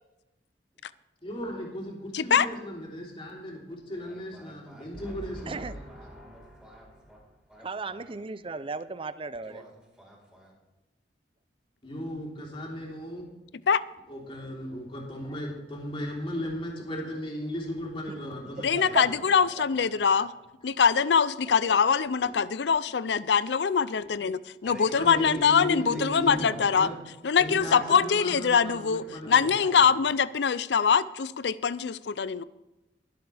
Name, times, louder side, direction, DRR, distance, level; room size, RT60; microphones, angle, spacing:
voice 1, 1.2-5.7 11.8-13.2 14.1-19.1 22.2-22.3 24.9-26.5 26.7-26.9 27.4-29.5, equal, 30° left, -2 dB, 3.3 m, -36 dB
voice 2, 2.1-2.5 13.7-13.8 18.6-20.3 20.6-26.9 27.2-32.4, left 6 dB, 70° left, 17 dB, 0.5 m, -23 dB
voice 3, 4.0-8.1 9.4-10.5 18.6-19.9 20.2-20.3 24.6-25.5 25.9-27.1 27.4-28.0 29.2-30.0, equal, 5° right, -3 dB, 4.3 m, -47 dB
voice 4, 5.5-5.8 7.6-9.6 18.9-19.0 21.7-21.8, right 3 dB, 30° right, 14 dB, 0.5 m, -35 dB
22.0 x 8.0 x 3.4 m, 1.0 s
head